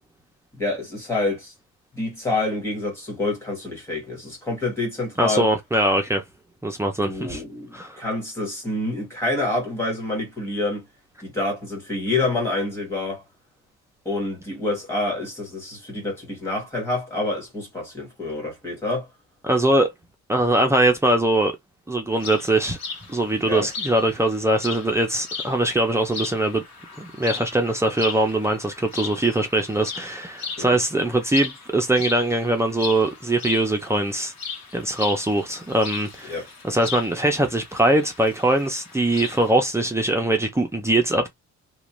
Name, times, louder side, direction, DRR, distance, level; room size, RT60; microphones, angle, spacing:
voice 1, 0.5-1.5 1.9-5.5 7.0-10.8 11.2-13.2 14.0-19.1 23.4-23.7 30.6-30.8 36.3-36.5, left 2 dB, 10° left, 1.4 m, -27 dB
voice 2, 5.2-6.2 6.6-7.4 7.7-8.0 19.4-19.9 20.3-21.5 21.9-22.8 23.1-26.6 27.0-34.3 34.7-36.4 36.6-41.3, right 1 dB, 10° right, 0.4 m, -22 dB
sound 1, 22.1-39.5, left 5 dB, 65° left, 1.1 m, -37 dB
2.5 x 2.2 x 3.0 m
cardioid pair, 175°, 29 cm